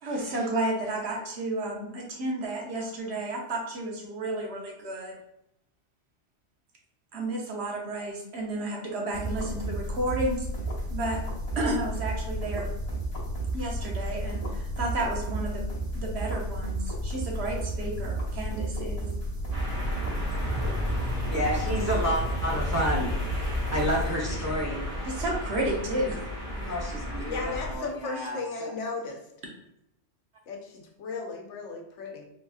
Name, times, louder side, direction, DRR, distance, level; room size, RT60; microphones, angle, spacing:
voice 1, 0.0-5.2 7.1-10.5 10.9-11.2 11.5-12.7 13.5-19.1 25.0-26.2, right 1 dB, 65° right, 0 dB, 1.0 m, -32 dB
sound 1, 9.1-24.6, right 1 dB, 35° left, 0.9 m, -32 dB
sound 2, 19.5-27.8, left 1 dB, 90° right, 1.4 m, -33 dB
voice 2, 21.3-23.1 23.7-24.8 26.6-28.7, equal, 20° right, -4 dB, 0.5 m, -30 dB
voice 3, 27.3-29.2 30.5-32.2, left 3 dB, 75° left, 1 dB, 0.9 m, -36 dB
3.9 x 2.6 x 2.3 m, 0.80 s
omnidirectional pair, 1.3 m